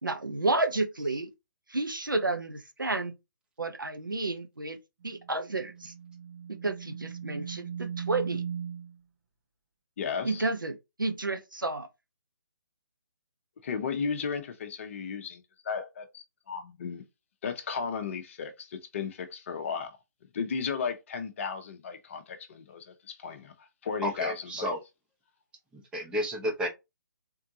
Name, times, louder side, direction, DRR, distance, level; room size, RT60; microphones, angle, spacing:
voice 1, 0.0-1.3 1.7-3.1 3.6-4.8 5.0-5.9 6.5-8.4 10.2-11.9, right 2 dB, 85° right, 0.9 m, -31 dB
sound 1, 5.1-9.0, right 8 dB, 50° right, 1.0 m, -38 dB
voice 2, 10.0-10.5 13.6-17.0 17.4-19.9 20.3-23.5 23.8-24.7, left 6 dB, 40° left, 0.8 m, -35 dB
voice 3, 24.0-24.8 25.9-26.7, equal, 10° right, 0.9 m, -31 dB
3.7 x 3.5 x 2.8 m
figure-of-eight pair, 140°, 11 cm